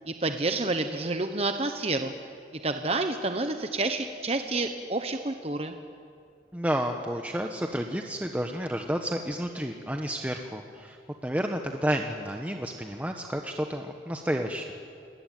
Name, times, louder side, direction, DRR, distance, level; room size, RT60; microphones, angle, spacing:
voice 1, 0.1-2.1 2.6-5.8, right 2 dB, 35° right, 7 dB, 1.0 m, -29 dB
voice 2, 6.5-11.0 11.2-14.7, equal, 10° right, 3 dB, 1.1 m, -31 dB
30.0 x 21.0 x 9.4 m, 2.5 s
head